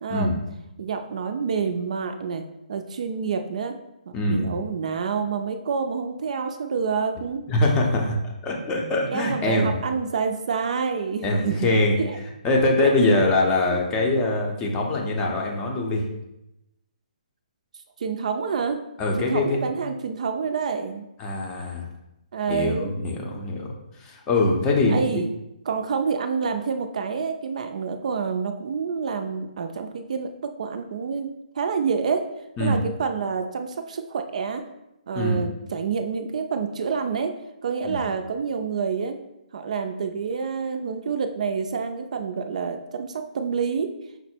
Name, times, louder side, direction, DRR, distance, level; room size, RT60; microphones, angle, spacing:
voice 1, 0.0-0.3 0.8-2.4 2.7-3.8 4.3-7.4 9.1-11.7 12.0-12.2 12.8-12.9 18.0-18.8 19.2-21.1 22.3-23.0 24.9-25.3 25.7-32.2 32.6-34.6 35.1-37.3 37.6-39.2 39.5-43.9, right 5 dB, 55° right, 6 dB, 0.4 m, -28 dB
voice 2, 4.1-4.5 7.5-9.8 11.2-12.0 12.4-16.0 19.0-19.7 21.2-21.9 22.5-25.2 32.6-32.8 35.1-35.5 37.9-38.0, left 2 dB, 15° left, 0 dB, 0.6 m, -23 dB
5.6 x 2.0 x 4.4 m, 0.90 s
hypercardioid pair, 160°, 5 cm